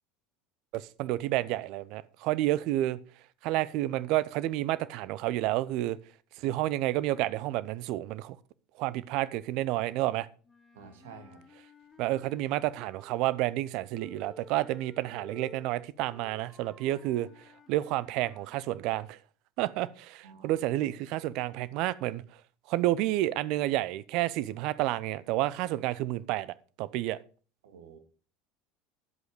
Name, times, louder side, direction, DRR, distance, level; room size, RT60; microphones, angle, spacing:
voice 1, 0.7-3.0 3.4-6.0 6.4-8.4 8.8-10.3 12.0-17.3 17.7-19.2 19.6-22.2 22.7-27.2, right 15 dB, 60° right, 0.7 m, -30 dB
Wind instrument woodwind instrument, 10.4-13.3 13.9-18.7, left 2 dB, 15° left, 4.1 m, -54 dB
voice 2, 10.7-11.4 20.2-20.5 27.6-28.0, right 5 dB, 75° right, 2.2 m, -50 dB
11.0 x 7.9 x 5.0 m
hypercardioid pair, 75°, 0 cm